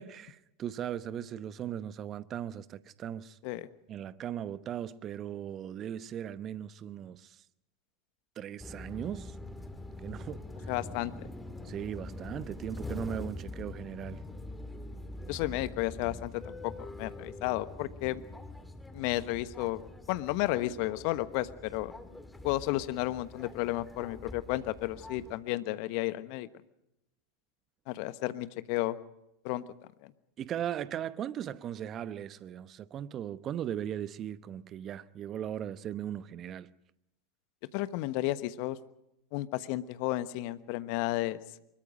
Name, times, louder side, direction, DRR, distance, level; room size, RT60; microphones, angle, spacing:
voice 1, 0.0-3.4 3.9-7.4 8.4-9.4 10.0-10.7 11.6-14.2 30.4-36.7, right 10 dB, 35° right, 0.9 m, -38 dB
sound 1, 8.6-25.3, left 2 dB, 5° left, 2.1 m, -44 dB
voice 2, 10.7-11.3 15.3-18.2 18.9-21.9 22.4-26.5 27.9-29.0 29.4-29.6 30.0-30.1 37.7-38.8 39.3-41.4, left 17 dB, 55° left, 1.2 m, -33 dB
24.0 x 21.5 x 5.2 m
figure-of-eight pair, 90°, 0 cm